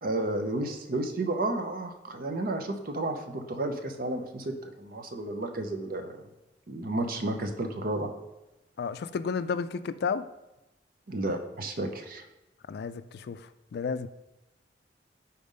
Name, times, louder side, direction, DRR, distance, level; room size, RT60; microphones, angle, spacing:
voice 1, 0.0-6.2 6.7-8.1 11.1-12.2, right 2 dB, 55° right, 0.7 m, -32 dB
voice 2, 8.8-10.3 12.7-14.1, left 5 dB, 60° left, 0.3 m, -32 dB
5.1 x 4.3 x 5.4 m
head